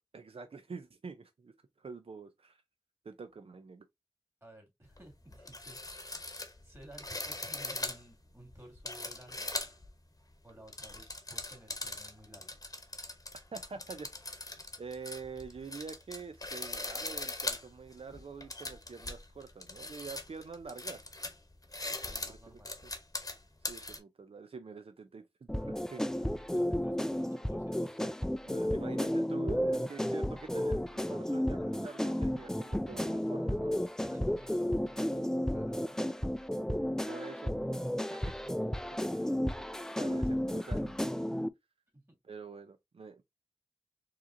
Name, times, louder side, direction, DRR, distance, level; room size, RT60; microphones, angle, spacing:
voice 1, 0.1-1.5 1.8-2.6 3.0-3.8 13.5-14.3 14.8-21.1 22.3-22.9 23.7-26.1 28.4-33.7 37.1-37.5 38.1-38.9 39.1-39.4 40.0-41.2 42.3-43.2, right 5 dB, 85° right, 0.5 m, -46 dB
voice 2, 4.4-6.1 6.6-9.5 10.4-12.6 21.8-22.7 26.5-28.1 34.0-36.0 41.9-42.2, right 1 dB, 25° right, 2.4 m, -55 dB
sound 1, 4.9-5.0 5.3-9.9 10.5-24.0, left 2 dB, 40° left, 0.9 m, -40 dB
sound 2, 25.5-41.5, equal, 5° left, 0.3 m, -33 dB
4.8 x 3.0 x 2.6 m
wide cardioid pair, 60°, 10 cm